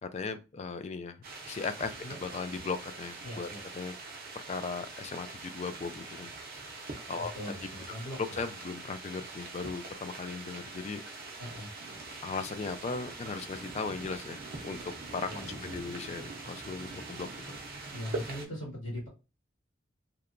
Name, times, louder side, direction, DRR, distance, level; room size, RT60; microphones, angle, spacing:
voice 1, 0.0-1.2 1.5-1.9 2.2-3.9 4.3-6.3 7.1-7.5 8.2-11.0 12.2-14.4 14.6-17.3, left 4 dB, 35° left, 10 dB, 0.3 m, -37 dB
sound 1, 1.2-18.5, right 3 dB, 50° right, 0.6 m, -43 dB
voice 2, 3.2-3.6 7.1-8.2 11.4-11.7 15.2-15.7 17.9-19.1, equal, 90° left, -4 dB, 1.6 m, -40 dB
2.8 x 2.2 x 2.4 m, 0.28 s
head